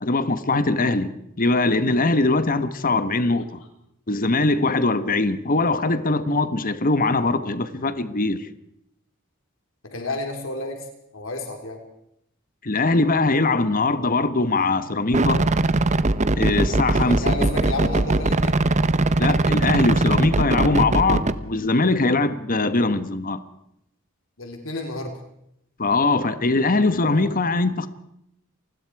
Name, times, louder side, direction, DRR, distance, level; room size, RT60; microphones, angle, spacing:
voice 1, 0.0-3.6 4.1-8.5 12.6-15.4 16.4-17.3 19.2-23.4 25.8-27.9, left 3 dB, 45° left, 1.3 m, -21 dB
voice 2, 9.8-10.9 11.1-11.8 17.0-18.6 24.4-25.1 27.0-27.3, left 2 dB, 70° left, 3.8 m, -31 dB
sound 1, 15.1-21.3, right 2 dB, 35° right, 0.9 m, -21 dB
28.5 x 20.5 x 4.8 m
head